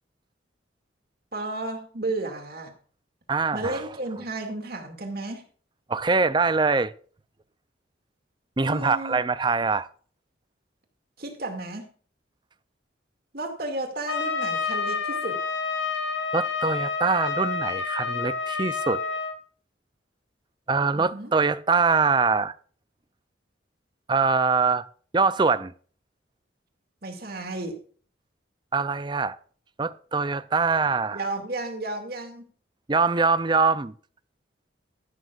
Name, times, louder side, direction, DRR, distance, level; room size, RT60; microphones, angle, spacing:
voice 1, 1.3-2.7 3.5-5.4 8.6-9.2 11.2-11.9 13.3-15.4 20.9-21.3 27.0-27.8 31.1-32.5, right 2 dB, 50° right, 2.3 m, -33 dB
voice 2, 3.3-3.9 5.9-6.9 8.6-9.9 16.3-19.0 20.7-22.5 24.1-24.8 25.1-25.7 28.7-29.4 29.8-31.2 32.9-33.9, right 4 dB, 25° right, 0.5 m, -23 dB
Trumpet, 14.1-19.4, left 5 dB, 90° left, 2.1 m, -29 dB
14.5 x 12.0 x 2.5 m
head